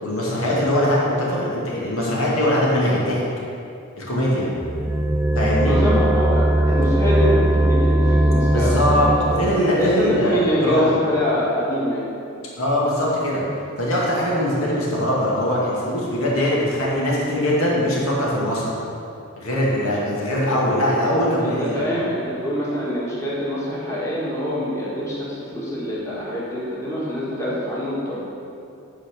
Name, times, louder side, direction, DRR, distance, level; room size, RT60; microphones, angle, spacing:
voice 1, 0.0-3.2 4.0-4.5 5.3-5.8 8.5-11.0 12.6-13.4 13.8-18.7 19.4-21.8, left 1 dB, 70° left, -5 dB, 2.2 m, -21 dB
sound 1, 4.6-9.7, right 1 dB, 10° right, 0.4 m, -19 dB
voice 2, 5.6-8.8 9.8-12.0 21.4-28.2, equal, 15° left, -7 dB, 1.6 m, -24 dB
9.1 x 4.4 x 6.8 m, 2.6 s
head